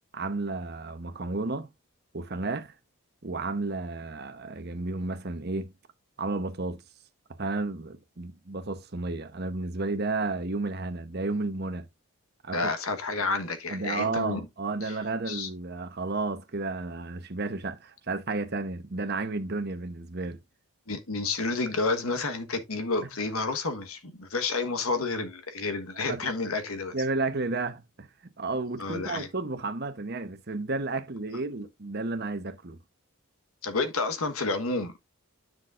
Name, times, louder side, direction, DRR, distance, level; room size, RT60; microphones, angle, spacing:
voice 1, 0.1-1.7 2.1-2.7 3.2-5.7 6.2-6.8 7.4-11.9 12.4-12.7 13.7-20.4 26.1-26.3 26.9-28.1 28.4-32.8, right 3 dB, 50° right, 1.0 m, -32 dB
voice 2, 12.5-14.5 14.8-15.0 15.3-15.5 20.9-26.9 28.8-29.3 33.6-35.1, left 3 dB, 80° left, 1.3 m, -30 dB
10.0 x 6.1 x 2.5 m
head